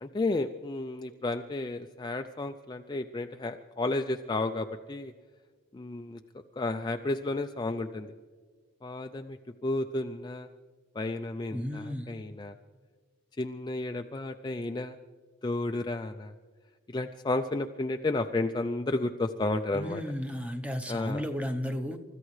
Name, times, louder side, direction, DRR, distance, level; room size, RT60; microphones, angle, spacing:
voice 1, 0.0-5.1 5.7-6.2 6.6-8.1 8.8-10.5 10.9-12.5 13.4-15.0 15.4-16.3 16.9-20.0 20.9-21.2, left 2 dB, 20° left, 5 dB, 0.4 m, -32 dB
voice 2, 11.5-12.1 19.7-22.0, equal, 5° right, 6 dB, 0.8 m, -33 dB
29.0 x 14.0 x 3.2 m, 1.5 s
head